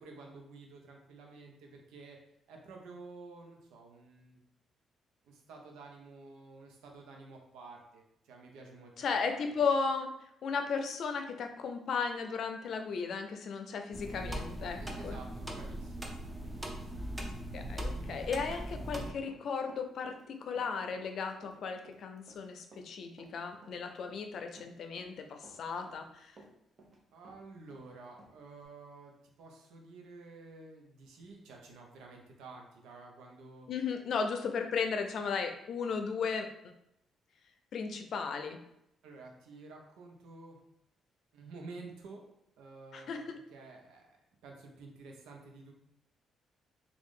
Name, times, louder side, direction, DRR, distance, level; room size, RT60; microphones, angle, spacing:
voice 1, 0.0-2.2 2.5-4.4 5.2-8.9 9.3-9.5 14.8-16.2 16.4-17.0 27.1-33.7 39.0-40.6 41.3-42.2 42.6-44.1 44.4-45.7, right 3 dB, 90° right, 1 dB, 0.8 m, -51 dB
voice 2, 9.0-15.2 17.5-26.4 33.7-36.5 37.7-38.6 42.9-43.4, left 5 dB, 65° left, 6 dB, 0.5 m, -35 dB
sound 1, 13.9-19.1, right 1 dB, 10° right, 0.7 m, -40 dB
Run, 17.9-23.4 23.6-25.2 25.4-27.0 27.3-28.7, right 2 dB, 50° right, 0.8 m, -57 dB
3.6 x 2.4 x 3.6 m, 0.79 s
cardioid pair, 90°, 0 cm